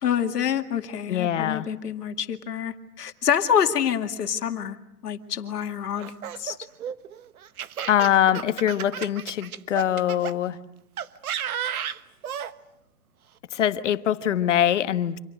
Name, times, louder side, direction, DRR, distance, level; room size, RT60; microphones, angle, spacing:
voice 1, 0.0-4.8 5.0-6.6, left 8 dB, 85° left, 6 dB, 2.3 m, -27 dB
voice 2, 1.1-1.7 7.9-10.6 13.5-15.2, left 10 dB, 50° left, 12 dB, 1.3 m, -23 dB
Laughter, 6.0-10.3 11.0-12.5, right 9 dB, 70° right, 1.3 m, -33 dB
29.5 x 27.0 x 6.5 m, 0.82 s
hypercardioid pair, 170°, 46 cm